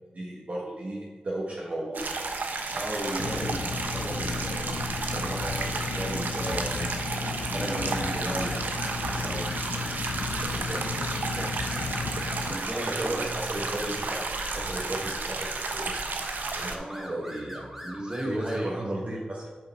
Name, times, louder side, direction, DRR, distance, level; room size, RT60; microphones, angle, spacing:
voice 1, 0.1-2.2 3.2-3.4 10.5-11.5 12.5-15.9 16.5-16.7 17.1-17.8 18.2-19.5, right 1 dB, 55° right, -4 dB, 1.4 m, -35 dB
sound 1, 1.9-16.8, right 3 dB, 85° right, 0.8 m, -32 dB
voice 2, 2.7-4.8 5.1-5.6 5.8-6.9 7.4-8.6 9.2-9.6 12.5-13.2 16.7-17.1 17.8-18.8, right 1 dB, 30° right, -2 dB, 2.3 m, -34 dB
sound 2, 3.2-12.6, left 4 dB, 85° left, 0.4 m, -34 dB
sound 3, 7.6-18.8, equal, 10° right, 1.8 m, -42 dB
8.0 x 5.4 x 4.6 m, 1.4 s
cardioid pair, 50°, 3 cm